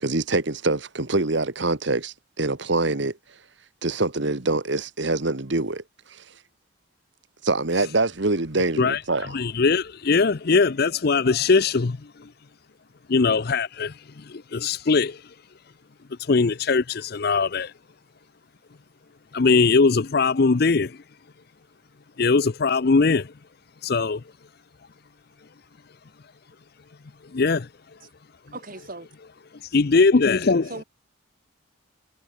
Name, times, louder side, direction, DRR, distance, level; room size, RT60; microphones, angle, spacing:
voice 1, 0.0-3.2 3.8-5.8 6.1-6.2 7.4-9.4, right 2 dB, 60° right, 1.5 m, -25 dB
voice 2, 9.3-12.3 13.1-15.2 16.2-17.7 19.3-21.0 22.2-23.3 23.8-24.2 27.3-27.7 29.7-30.7, left 4 dB, 50° left, 0.6 m, -21 dB
voice 3, 28.5-29.1 30.2-30.3 30.6-30.8, right 2 dB, 45° right, 2.0 m, -38 dB
head